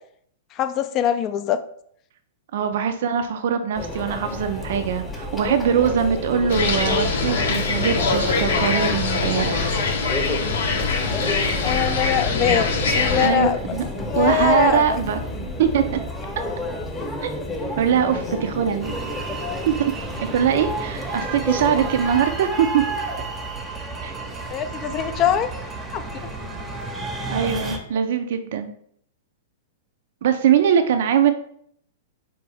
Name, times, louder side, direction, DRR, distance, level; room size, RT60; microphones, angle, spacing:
voice 1, 0.5-1.6 11.6-12.7 12.9-13.6 14.1-15.0 24.5-25.5 25.9-26.3, left 9 dB, 35° left, 11 dB, 0.3 m, -23 dB
voice 2, 2.5-9.8 13.2-13.8 14.2-15.2 15.6-16.0 17.2-18.9 19.7-19.8 20.3-22.8 24.0-24.1 27.3-28.7 30.2-31.3, right 8 dB, 65° right, 8 dB, 0.3 m, -22 dB
Conversation / Chatter / Crowd, 3.7-22.2, left 2 dB, 15° left, 0.8 m, -31 dB
sound 1, 6.5-13.3, left 4 dB, 70° left, 0.6 m, -23 dB
sound 2, 18.8-27.8, right 3 dB, 15° right, 0.7 m, -31 dB
4.4 x 2.5 x 3.4 m, 0.66 s
hypercardioid pair, 115°, 0 cm